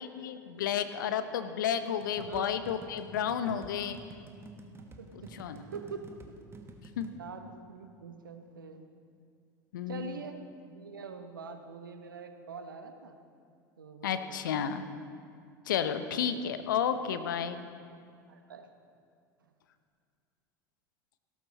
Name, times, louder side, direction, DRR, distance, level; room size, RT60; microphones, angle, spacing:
voice 1, 0.2-4.0 5.1-5.6 7.0-7.1 9.7-10.2 14.0-14.9 15.7-17.6, left 8 dB, 70° left, 10 dB, 0.8 m, -32 dB
sound 1, 2.0-7.2, right 3 dB, 20° right, 1.3 m, -50 dB
voice 2, 2.2-2.5 5.0-6.2 7.2-8.8 9.9-10.4 10.7-13.2 13.8-14.8 16.0-16.5 17.0-17.2 18.3-18.7, right 5 dB, 80° right, 7 dB, 1.0 m, -45 dB
16.5 x 13.5 x 4.1 m, 2.3 s
figure-of-eight pair, 80°, 11 cm